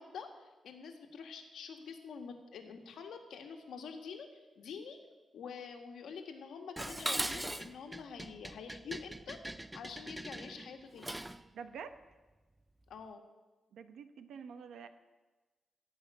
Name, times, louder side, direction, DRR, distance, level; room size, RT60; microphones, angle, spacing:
voice 1, 0.0-5.0 5.3-9.4 9.7-11.2 12.9-13.2, left 6 dB, 75° left, 5 dB, 1.7 m, -47 dB
Dishes pots and pans, 6.8-11.4, right 1 dB, 10° right, 0.4 m, -40 dB
voice 2, 11.5-11.9 13.7-14.9, right 6 dB, 90° right, 10 dB, 1.0 m, -47 dB
15.5 x 5.7 x 9.8 m, 1.2 s
wide cardioid pair, 160°, 0 cm